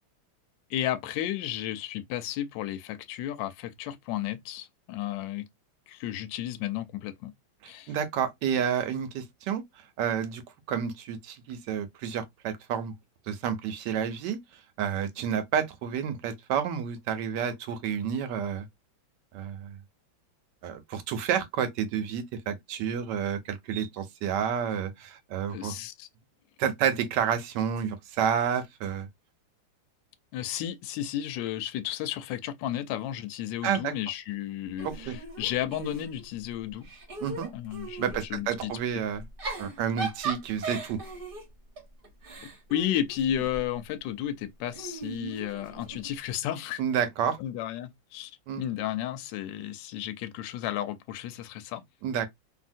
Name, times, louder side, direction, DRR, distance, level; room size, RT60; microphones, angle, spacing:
voice 1, 0.7-5.5 5.9-7.3 7.7-7.9 25.5-26.1 30.3-36.9 37.5-38.0 38.3-39.1 42.7-46.8 47.4-51.8, left 11 dB, 75° left, 1.2 m, -33 dB
voice 2, 7.6-9.6 10.0-10.4 10.7-12.9 13.3-14.4 14.8-18.7 19.3-19.8 20.6-25.7 26.6-29.1 33.6-33.9 34.8-35.1 37.2-37.5 38.0-39.2 39.6-41.0 46.8-47.4 48.5-48.6 52.0-52.3, right 8 dB, 70° right, 1.2 m, -30 dB
Giggle / Chuckle chortle, 34.8-36.4 36.8-38.2 39.2-43.7 44.7-46.1, right 3 dB, 40° right, 0.9 m, -38 dB
2.8 x 2.7 x 2.5 m
omnidirectional pair, 2.1 m